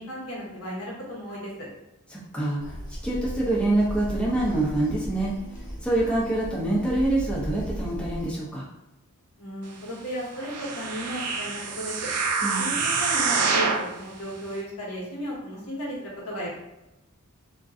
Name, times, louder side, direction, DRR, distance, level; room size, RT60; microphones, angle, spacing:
voice 1, 0.0-1.7 9.4-12.0 12.6-16.5, equal, 80° left, -5 dB, 1.2 m, -35 dB
voice 2, 2.1-2.8 3.0-5.3 5.8-8.6 12.4-12.7, right 2 dB, 5° left, -6 dB, 0.6 m, -25 dB
sound 1, 2.6-8.4, equal, 40° left, 1.0 m, -36 dB
sound 2, 10.4-13.9 14.5-14.6, right 5 dB, 85° right, 0.5 m, -26 dB
2.5 x 2.2 x 3.6 m, 0.95 s
head